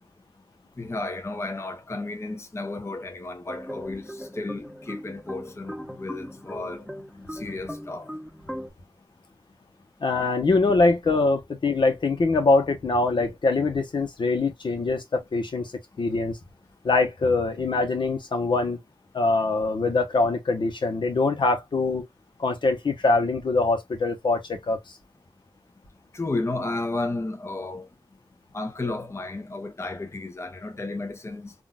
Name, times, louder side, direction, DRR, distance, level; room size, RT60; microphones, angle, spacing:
voice 1, 0.8-6.9 7.3-8.1 26.1-27.9 28.5-31.5, left 2 dB, 35° left, 0.6 m, -33 dB
sound 1, 3.5-8.7, equal, ahead, 0.8 m, -39 dB
voice 2, 10.0-15.7 16.0-16.4 16.8-18.8 19.1-22.1 22.4-24.8, left 3 dB, 80° left, 0.9 m, -23 dB
3.7 x 2.4 x 2.3 m
wide cardioid pair, 70°, 8 cm